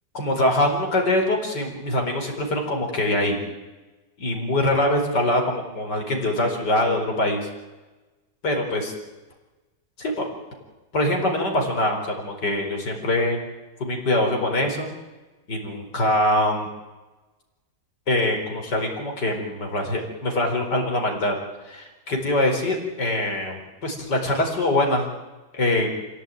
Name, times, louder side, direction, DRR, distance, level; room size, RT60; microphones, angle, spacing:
voice 1, 0.1-3.4 4.2-7.5 8.4-8.9 10.0-10.2 10.9-13.4 13.8-14.9 15.5-16.7 18.1-21.4 21.7-25.1 25.5-25.9, left 1 dB, 75° left, 2 dB, 5.0 m, -23 dB
27.5 x 16.5 x 9.2 m, 1.2 s
omnidirectional pair, 1.9 m